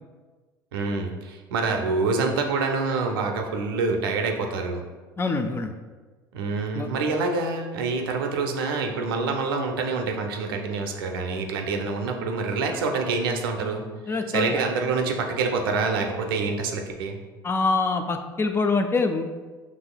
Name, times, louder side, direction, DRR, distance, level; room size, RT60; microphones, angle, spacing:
voice 1, 0.7-4.8 6.3-17.2, right 4 dB, 75° right, 3 dB, 0.5 m, -26 dB
voice 2, 5.2-5.8 6.7-6.9 14.1-14.6 17.4-19.2, left 3 dB, 20° left, 7 dB, 0.3 m, -25 dB
6.1 x 3.0 x 2.2 m, 1.3 s
hypercardioid pair, 70°, 12 cm